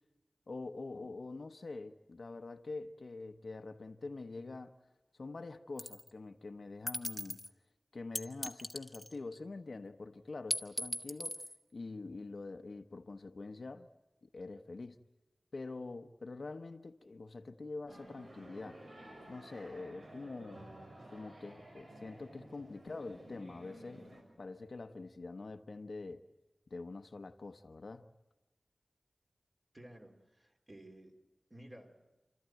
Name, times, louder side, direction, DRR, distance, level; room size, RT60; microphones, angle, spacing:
voice 1, 0.5-4.7 5.2-7.4 7.9-11.5 11.7-13.9 14.2-15.0 15.5-18.8 19.3-20.6 21.1-26.2 26.7-28.1, left 3 dB, 65° left, 1.0 m, -45 dB
sound 1, 5.8-6.1 6.9-7.5 8.2-9.4 10.5-11.6, left 1 dB, 15° left, 1.2 m, -38 dB
sound 2, 17.9-24.2, right 1 dB, 75° right, 5.6 m, -53 dB
voice 2, 29.7-31.1 31.5-32.1, right 1 dB, 30° right, 3.4 m, -54 dB
29.5 x 13.5 x 9.2 m
wide cardioid pair, 75°, 0 cm